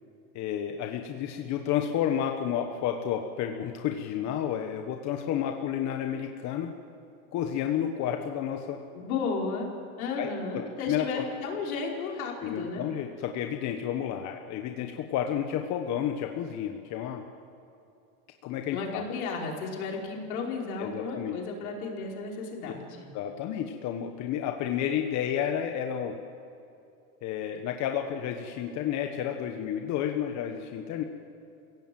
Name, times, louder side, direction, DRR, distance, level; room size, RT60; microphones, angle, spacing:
voice 1, 0.3-6.7 7.3-8.8 10.2-11.3 12.4-17.2 18.4-19.1 20.8-21.4 22.6-22.7 23.1-26.2 27.2-31.0, left 9 dB, 40° left, 4 dB, 1.5 m, -31 dB
voice 2, 8.9-9.7 10.0-12.9 18.7-23.1, left 4 dB, 75° left, -1 dB, 5.0 m, -33 dB
27.5 x 17.0 x 7.8 m, 2.7 s
supercardioid pair, 135°, 42 cm